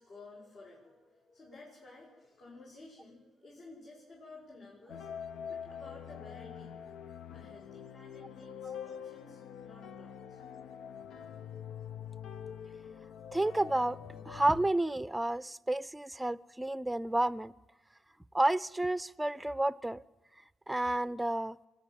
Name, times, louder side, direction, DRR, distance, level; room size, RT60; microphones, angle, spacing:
voice 1, 0.0-6.8 7.3-10.4, left 2 dB, 60° left, 7.0 m, -54 dB
sound 1, 4.9-14.7, left 8 dB, 80° left, 0.7 m, -45 dB
voice 2, 13.3-17.5 18.3-20.0 20.7-21.6, right 1 dB, 10° right, 0.6 m, -31 dB
26.0 x 10.5 x 9.5 m
cardioid pair, 90°, 0 cm